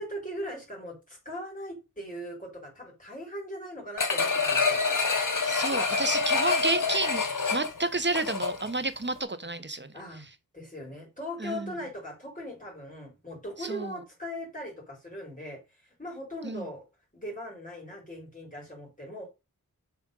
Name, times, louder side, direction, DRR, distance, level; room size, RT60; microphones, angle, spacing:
voice 1, 0.0-4.8 5.7-5.8 9.9-10.3 10.5-16.8 17.1-19.3, equal, 20° left, 4.1 m, -39 dB
sound 1, 4.0-8.8 9.2-9.3, left 4 dB, 60° left, 1.3 m, -27 dB
voice 2, 5.4-9.9 11.4-11.7 13.6-14.0 16.4-16.7, right 2 dB, 30° right, 1.1 m, -31 dB
7.5 x 4.4 x 5.4 m
wide cardioid pair, 50°, 35 cm